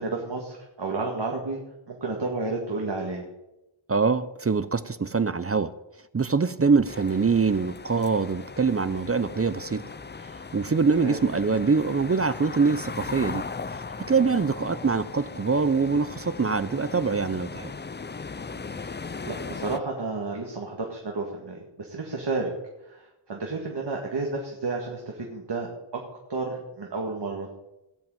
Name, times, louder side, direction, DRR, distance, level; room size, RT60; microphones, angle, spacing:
voice 1, 0.0-1.6 1.9-3.2 11.0-11.2 14.2-14.4 18.5-22.5 22.8-25.7 25.9-26.0 26.3-27.5, right 3 dB, 60° right, 2.0 m, -31 dB
voice 2, 3.9-5.7 6.1-9.9 10.4-13.4 14.0-17.7, right 4 dB, 30° right, 0.5 m, -24 dB
sound 1, 6.9-19.8, left 4 dB, 25° left, 0.5 m, -38 dB
17.5 x 5.9 x 9.0 m
wide cardioid pair, 100°, 46 cm